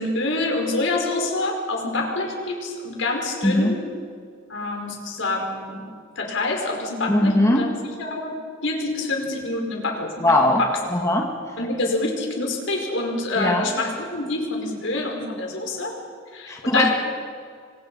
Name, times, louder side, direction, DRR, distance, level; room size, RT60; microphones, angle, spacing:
voice 1, 0.0-3.8 4.5-5.8 6.1-8.4 8.6-10.3 10.6-10.8 11.6-16.0 16.3-16.9, left 2 dB, 70° left, 1 dB, 5.1 m, -26 dB
voice 2, 7.1-7.7 10.2-10.6 10.9-11.3 13.4-13.6 16.5-16.9, left 1 dB, 15° left, 0 dB, 2.0 m, -19 dB
28.0 x 25.0 x 5.6 m, 2.1 s
head